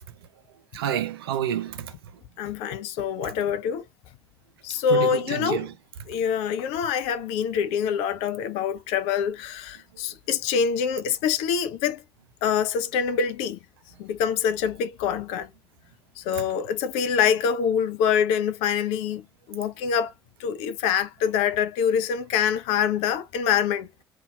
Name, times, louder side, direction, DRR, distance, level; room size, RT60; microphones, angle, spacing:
voice 1, 0.7-1.9 4.9-5.7, right 9 dB, 75° right, 0.4 m, -28 dB
voice 2, 2.4-3.8 4.6-5.7 6.1-12.0 12.4-13.6 14.0-15.5 16.2-19.2 19.5-20.1 20.4-23.9, left 7 dB, 60° left, 0.5 m, -25 dB
2.6 x 2.3 x 2.3 m
figure-of-eight pair, 50°, 13 cm